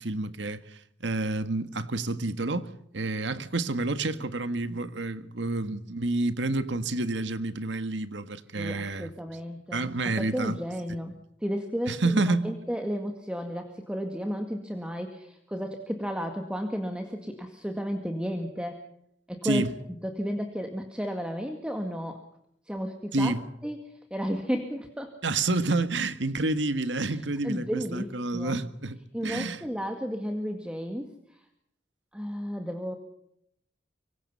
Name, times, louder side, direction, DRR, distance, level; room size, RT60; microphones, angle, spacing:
voice 1, 0.0-2.7 2.9-9.1 9.7-10.6 11.9-12.5 19.4-19.7 23.1-23.4 25.2-29.0 29.2-29.7, right 2 dB, 75° right, 1.7 m, -29 dB
voice 2, 8.6-11.1 11.4-18.8 19.3-19.7 20.0-22.3 22.7-23.3 23.6-25.1 27.4-28.6 29.1-31.4 32.1-33.0, equal, 5° right, 2.0 m, -33 dB
25.0 x 24.5 x 5.6 m
head